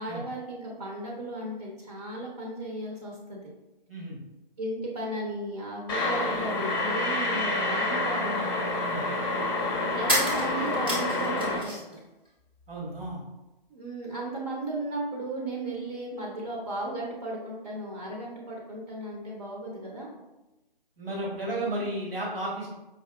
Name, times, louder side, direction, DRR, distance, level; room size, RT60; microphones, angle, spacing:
voice 1, 0.0-3.5 4.6-8.5 9.9-11.8 13.7-20.1 21.5-21.7, right 1 dB, 40° right, -2 dB, 0.7 m, -35 dB
sound 1, 5.9-11.6, left 2 dB, 25° left, 0.7 m, -28 dB
sound 2, 10.1-12.0 12.3-13.1, equal, 10° right, 0.4 m, -31 dB
voice 2, 12.7-13.2 21.0-22.7, right 1 dB, 75° right, -4 dB, 1.3 m, -33 dB
4.7 x 2.8 x 2.2 m, 1.0 s
figure-of-eight pair, 140°, 29 cm